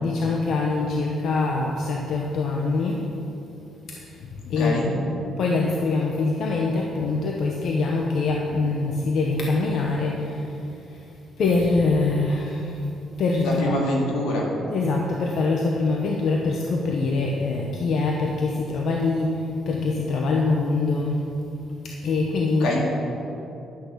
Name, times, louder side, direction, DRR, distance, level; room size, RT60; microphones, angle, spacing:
voice 1, 0.0-3.1 3.9-11.1 11.4-13.8 14.7-21.3 21.8-22.7, left 3 dB, 65° left, 0 dB, 1.0 m, -24 dB
voice 2, 4.6-4.9 13.4-14.5 22.6-22.9, left 1 dB, 90° left, -2 dB, 2.2 m, -25 dB
11.0 x 6.2 x 6.9 m, 2.8 s
cardioid pair, 90°, 0 cm